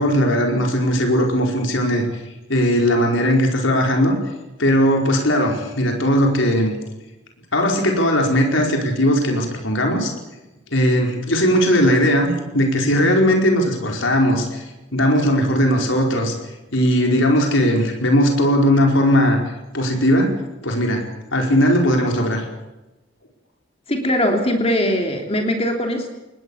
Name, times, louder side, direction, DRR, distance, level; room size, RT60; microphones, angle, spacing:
voice 1, 0.0-2.1 2.5-4.2 4.6-6.8 7.5-10.1 10.7-14.6 14.9-16.3 16.7-19.4 19.7-20.3 20.6-21.0 21.3-22.4, equal, 75° left, 1 dB, 4.9 m, -18 dB
voice 2, 23.9-26.1, left 1 dB, 30° left, 3 dB, 3.1 m, -20 dB
26.5 x 20.5 x 7.2 m, 1.0 s
head